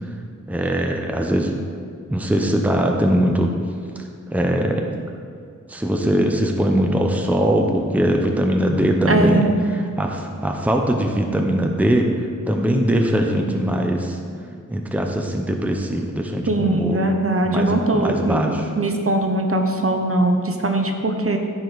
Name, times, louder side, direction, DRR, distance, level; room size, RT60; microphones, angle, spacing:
voice 1, 0.5-1.5 2.1-3.5 4.0-4.9 5.7-9.4 9.7-14.2 14.7-17.0 17.4-18.7, equal, 5° right, 2 dB, 0.8 m, -21 dB
voice 2, 9.1-9.6 16.5-21.4, right 2 dB, 45° right, 4 dB, 0.9 m, -21 dB
15.0 x 5.1 x 4.1 m, 2.2 s
wide cardioid pair, 85°, 32 cm